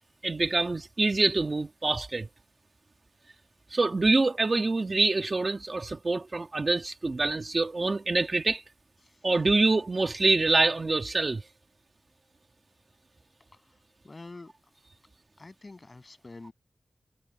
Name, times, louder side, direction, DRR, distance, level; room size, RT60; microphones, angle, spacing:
voice 1, 0.2-2.3 3.7-8.6 9.2-11.4, right 3 dB, 40° right, 1.6 m, -25 dB
voice 2, 14.0-14.5 15.4-16.5, left 2 dB, 35° left, 7.6 m, -47 dB
wide cardioid pair, 105°, 0 cm